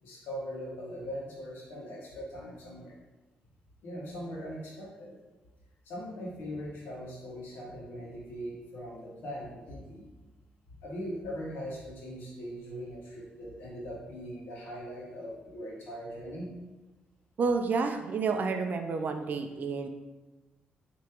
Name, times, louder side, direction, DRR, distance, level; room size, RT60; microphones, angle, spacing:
voice 1, 0.0-2.9 3.8-5.1 5.8-10.0 10.8-16.5, equal, 90° left, -5 dB, 1.3 m, -40 dB
voice 2, 17.4-19.9, right 4 dB, 55° right, 6 dB, 0.4 m, -30 dB
4.8 x 2.9 x 2.9 m, 1.2 s
cardioid pair, 90°, 3 cm